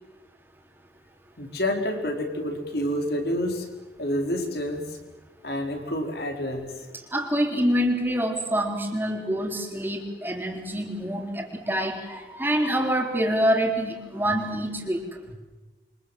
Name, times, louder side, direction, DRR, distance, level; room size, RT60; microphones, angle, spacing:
voice 1, 1.4-3.6 4.0-5.0 5.4-6.7, left 1 dB, 60° left, 3 dB, 5.0 m, -28 dB
voice 2, 6.9-15.0, equal, 10° right, 2 dB, 3.9 m, -26 dB
28.0 x 25.0 x 7.8 m, 1.2 s
head